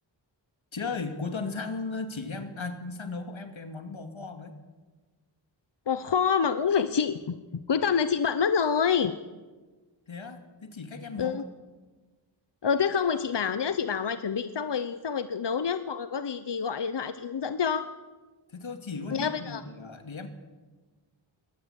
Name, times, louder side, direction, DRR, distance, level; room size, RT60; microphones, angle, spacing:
voice 1, 0.7-4.5 10.1-11.4 18.5-20.3, left 4 dB, 90° left, 7 dB, 2.6 m, -36 dB
voice 2, 5.9-9.1 11.2-11.4 12.6-17.9 19.1-19.6, left 6 dB, 65° left, 11 dB, 1.0 m, -27 dB
22.0 x 18.5 x 8.3 m, 1.3 s
wide cardioid pair, 60°, 46 cm